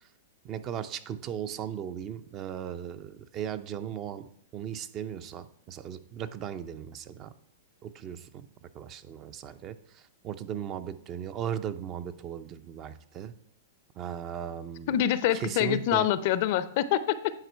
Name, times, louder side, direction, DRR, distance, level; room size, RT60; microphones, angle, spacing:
voice 1, 0.4-4.3 4.5-7.3 7.8-8.5 8.7-13.3 14.0-14.9 15.3-16.1, right 9 dB, 35° right, 12 dB, 0.5 m, -37 dB
voice 2, 14.9-17.3, left 11 dB, 55° left, 15 dB, 0.5 m, -26 dB
9.7 x 4.3 x 4.5 m, 0.65 s
hypercardioid pair, 130°, 0 cm